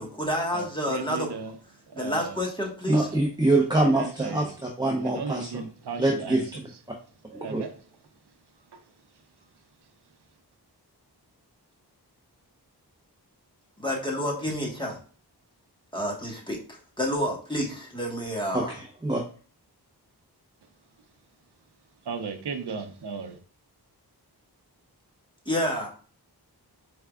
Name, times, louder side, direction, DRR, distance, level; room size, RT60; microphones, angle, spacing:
voice 1, 0.0-1.3 1.9-3.1 13.8-15.0 15.9-18.7 25.4-25.9, equal, 10° left, -1 dB, 1.3 m, -29 dB
voice 2, 0.5-1.6 1.9-2.4 2.9-3.2 3.8-4.5 4.8-6.7 7.3-7.7 8.7-8.8 22.0-23.4, right 5 dB, 75° right, 7 dB, 0.6 m, -36 dB
voice 3, 2.9-4.5 4.8-5.7 6.0-6.7 7.3-7.6 18.5-19.2, right 2 dB, 10° right, -1 dB, 0.6 m, -25 dB
4.5 x 3.4 x 2.3 m, 0.41 s
wide cardioid pair, 60°, 40 cm